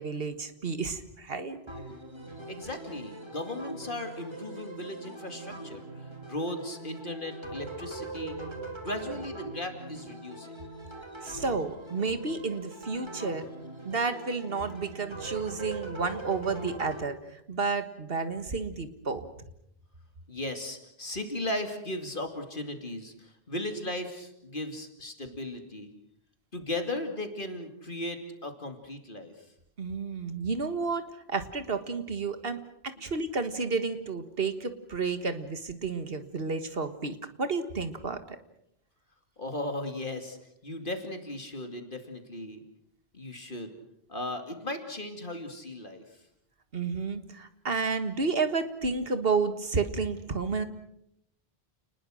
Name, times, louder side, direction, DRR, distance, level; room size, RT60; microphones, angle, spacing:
voice 1, 0.0-1.6 11.2-13.4 13.9-19.3 29.8-38.4 46.7-50.6, right 4 dB, 65° right, 10 dB, 1.9 m, -31 dB
sound 1, 1.7-17.0, right 2 dB, 25° right, 3.3 m, -42 dB
voice 2, 2.5-8.4 8.8-10.5 15.0-15.3 20.3-25.9 26.5-29.5 39.4-40.4 40.6-42.6 43.1-43.8 44.1-46.2, left 1 dB, 55° left, 6 dB, 2.8 m, -37 dB
29.5 x 20.0 x 6.4 m, 0.76 s
omnidirectional pair, 1.0 m